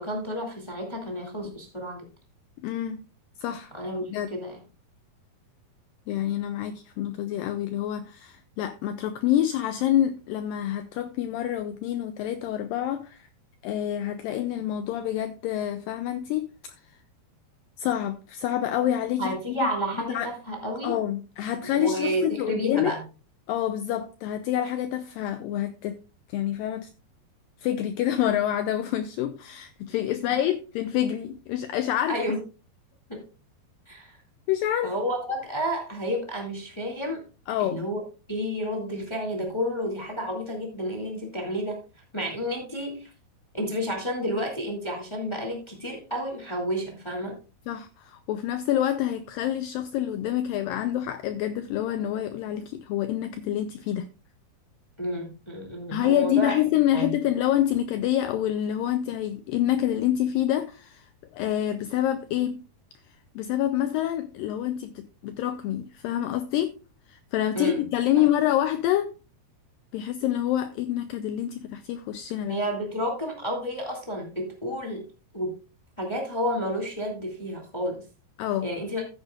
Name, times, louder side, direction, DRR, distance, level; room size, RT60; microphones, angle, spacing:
voice 1, 0.0-2.1 3.7-4.6 19.2-21.0 21.6-23.0 32.1-32.4 33.1-33.2 33.9-34.2 34.8-37.2 37.6-38.0 38.3-41.8 42.1-43.1 43.5-47.4 55.0-56.6 56.9-57.1 67.5-67.8 72.5-75.1 75.3-75.5 76.0-78.0 78.6-79.0, equal, 15° left, 1.1 m, -30 dB
voice 2, 2.6-3.0 3.4-3.7 4.1-4.3 6.1-13.3 13.6-16.8 17.8-19.6 20.1-20.3 20.8-22.9 23.5-26.0 26.3-26.9 27.6-32.2 34.5-34.9 37.5-37.8 47.7-54.1 55.9-61.1 61.3-62.6 63.4-66.7 67.1-69.1 69.9-72.6 78.4-78.7, left 12 dB, 80° left, 2.1 m, -27 dB
14.5 x 8.2 x 2.4 m
omnidirectional pair, 4.5 m